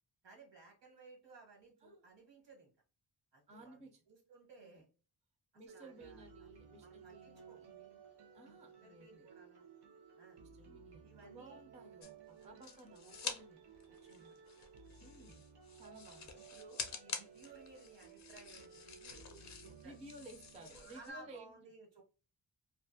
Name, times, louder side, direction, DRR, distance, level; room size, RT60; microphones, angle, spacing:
voice 1, 0.2-2.7 3.3-4.9 5.7-6.5 6.8-7.6 8.2-9.6 10.2-10.4 11.0-11.6 12.4-12.6 14.2-14.4 16.5-20.0 20.7-22.0, right 2 dB, 85° right, 0 dB, 1.3 m, -59 dB
voice 2, 3.5-4.0 4.6-4.8 5.5-8.0 8.3-9.3 10.4-14.4 15.0-15.4 15.7-16.4 19.8-21.6, right 2 dB, 20° right, 4 dB, 0.3 m, -56 dB
sound 1, 5.7-21.4, right 6 dB, 65° right, 0.8 m, -58 dB
sound 2, 12.0-13.4 13.7-21.1, left 6 dB, 40° left, 0.5 m, -48 dB
2.4 x 2.4 x 2.5 m, 0.35 s
wide cardioid pair, 175°, 42 cm